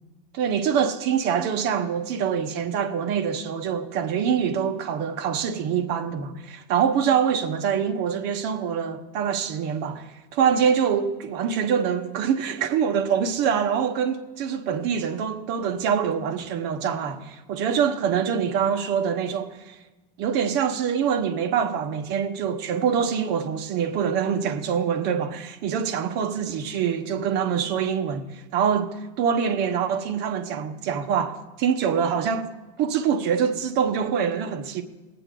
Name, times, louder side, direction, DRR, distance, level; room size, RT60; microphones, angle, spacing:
voice 1, 0.3-19.8 20.2-32.5 32.8-34.8, right 7 dB, 55° right, 1.1 m, -25 dB
20.5 x 9.0 x 3.8 m
supercardioid pair, 135°, 21 cm